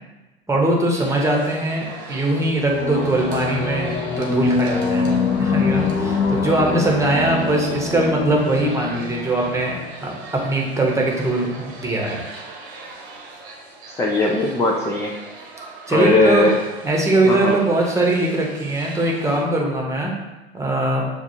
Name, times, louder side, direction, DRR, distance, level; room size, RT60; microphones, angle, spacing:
voice 1, 0.5-10.1 10.4-12.2 15.9-16.4 16.8-20.1 20.5-21.0, right 2 dB, 10° right, -1 dB, 0.9 m, -21 dB
sound 1, 0.9-19.4, right 3 dB, 60° right, 1.1 m, -40 dB
sound 2, 2.7-10.1, left 4 dB, 45° left, 0.9 m, -24 dB
voice 2, 13.9-15.1 15.9-16.5 17.3-17.6, left 2 dB, 10° left, -2 dB, 0.4 m, -19 dB
6.9 x 2.4 x 2.7 m, 1.1 s
hypercardioid pair, 95°, 31 cm